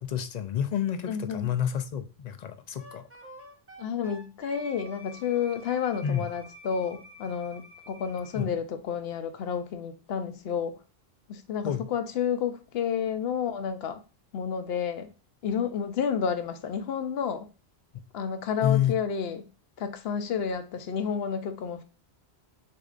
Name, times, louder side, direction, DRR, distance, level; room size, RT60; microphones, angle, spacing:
voice 1, 0.0-3.0 6.0-6.3 8.3-8.5 11.6-11.9 18.6-18.9, left 10 dB, 55° left, 0.5 m, -29 dB
voice 2, 1.1-1.5 3.8-10.8 11.3-14.0 14.3-15.1 15.4-17.5 18.1-19.4 19.8-21.8, left 7 dB, 70° left, 0.9 m, -30 dB
Wind instrument woodwind instrument, 2.8-8.4, equal, 15° right, 0.7 m, -49 dB
6.5 x 2.5 x 2.5 m
omnidirectional pair, 1.1 m